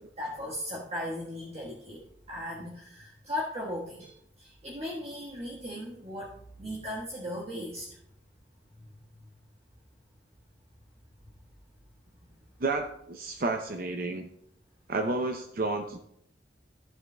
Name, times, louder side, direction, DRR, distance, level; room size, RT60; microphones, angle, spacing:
voice 1, 0.2-8.0 8.8-8.9 9.2-9.3, left 1 dB, 35° right, -4 dB, 1.4 m, -37 dB
voice 2, 12.6-14.3 14.9-16.0, right 3 dB, 55° right, 4 dB, 0.6 m, -31 dB
15.0 x 7.8 x 2.2 m, 0.73 s
head